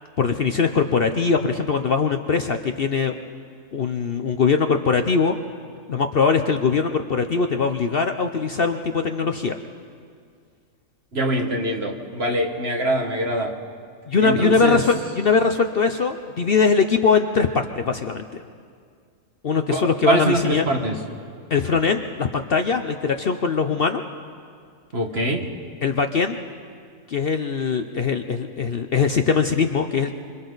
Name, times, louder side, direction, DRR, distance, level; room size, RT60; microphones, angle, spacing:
voice 1, 0.2-3.2 3.7-5.3 5.9-9.6 14.1-18.4 19.4-20.6 21.5-24.0 25.8-26.4 27.1-30.1, left 5 dB, 50° left, 6 dB, 0.8 m, -21 dB
voice 2, 11.1-13.6 14.2-14.8 19.7-21.0 24.9-25.5, right 1 dB, 45° right, 2 dB, 1.9 m, -23 dB
26.5 x 26.0 x 4.0 m, 2.1 s
omnidirectional pair, 1.4 m